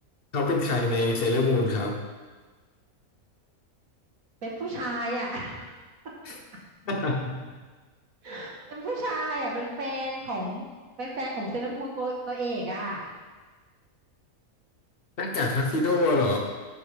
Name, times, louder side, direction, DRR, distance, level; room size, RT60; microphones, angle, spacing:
voice 1, 0.3-2.0 6.2-6.4 6.9-7.3 15.2-16.4, left 2 dB, 45° left, 1 dB, 1.3 m, -25 dB
voice 2, 4.4-5.7 8.2-10.7 11.0-13.0, right 1 dB, 75° right, -2 dB, 2.1 m, -32 dB
10.5 x 7.8 x 3.5 m, 1.4 s
omnidirectional pair, 1.5 m